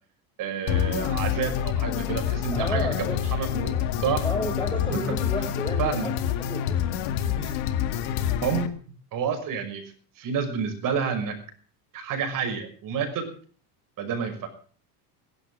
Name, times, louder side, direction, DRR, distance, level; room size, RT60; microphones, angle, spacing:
voice 1, 0.4-4.2 4.9-5.0 5.4-5.5 5.8-6.1 8.4-8.7 9.1-9.8 10.2-11.4 11.9-13.3 14.0-14.5, right 7 dB, 50° right, 4 dB, 6.0 m, -29 dB
sound 1, 0.7-8.7, left 10 dB, 70° left, 2.1 m, -27 dB
voice 2, 2.5-3.2 4.2-7.6, equal, 10° left, 4 dB, 5.7 m, -33 dB
16.0 x 11.5 x 7.4 m, 0.43 s
supercardioid pair, 125°, 43 cm